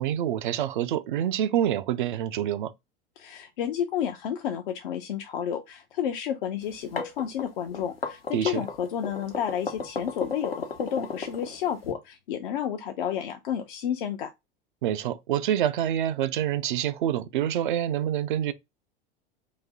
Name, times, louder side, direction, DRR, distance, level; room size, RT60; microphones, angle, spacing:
voice 1, 0.0-2.7 8.3-8.6 14.8-18.5, right 10 dB, 60° right, 0.5 m, -27 dB
voice 2, 3.2-14.3, left 9 dB, 60° left, 0.5 m, -31 dB
sound 1, 6.7-11.9, left 4 dB, 80° left, 0.8 m, -34 dB
4.1 x 2.6 x 3.5 m
figure-of-eight pair, 80°, 29 cm